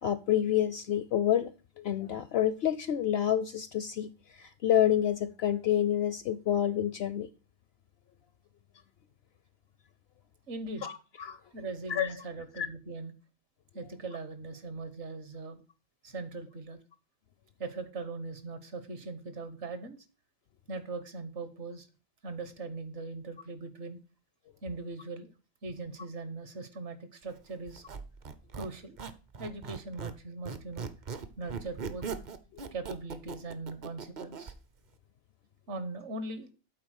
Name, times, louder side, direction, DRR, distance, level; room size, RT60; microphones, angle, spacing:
voice 1, 0.0-1.5 1.8-4.1 4.4-7.3 10.8-10.9 11.2-11.4 11.9-12.1 12.6-12.7, left 10 dB, 65° left, 0.7 m, -28 dB
voice 2, 10.5-11.0 11.5-13.1 13.7-15.6 16.0-16.8 17.6-20.0 20.7-21.9 22.2-24.0 24.6-25.3 25.6-27.8 28.5-29.0 29.4-30.9 31.4-32.1 32.7-34.5 35.7-36.5, right 3 dB, 60° right, 1.4 m, -40 dB
Squeak, 27.7-30.2 30.5-34.6, right 5 dB, 45° right, 0.7 m, -40 dB
8.5 x 4.3 x 6.3 m
omnidirectional pair, 1.3 m